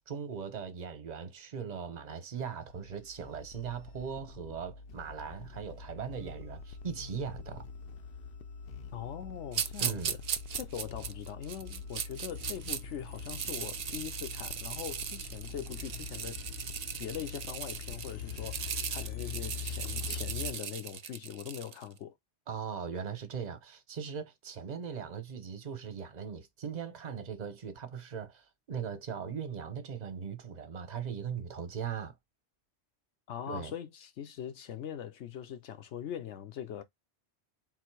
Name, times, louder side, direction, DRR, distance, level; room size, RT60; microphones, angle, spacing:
voice 1, 0.1-7.7 9.8-10.1 22.5-32.1 33.5-33.7, right 7 dB, 40° right, 0.9 m, -39 dB
sound 1, 2.7-20.5, left 6 dB, 60° left, 0.7 m, -44 dB
voice 2, 8.9-10.2 10.5-16.4 17.0-22.2 33.3-36.8, left 9 dB, 80° left, 1.0 m, -41 dB
sound 2, 9.5-12.8 13.2-21.8, right 8 dB, 60° right, 0.4 m, -38 dB
sound 3, 12.3-20.0, right 2 dB, 5° left, 0.5 m, -54 dB
3.9 x 2.7 x 4.5 m
omnidirectional pair, 1.2 m